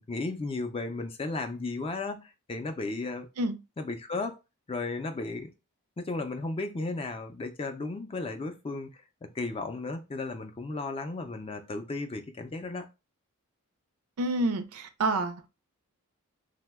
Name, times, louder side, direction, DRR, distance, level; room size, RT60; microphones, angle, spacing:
voice 1, 0.0-3.3 3.8-4.4 4.7-5.5 6.0-12.9, left 3 dB, 25° left, 0.4 m, -34 dB
voice 2, 14.2-15.5, right 2 dB, 75° right, 0.5 m, -28 dB
2.8 x 2.1 x 3.4 m
head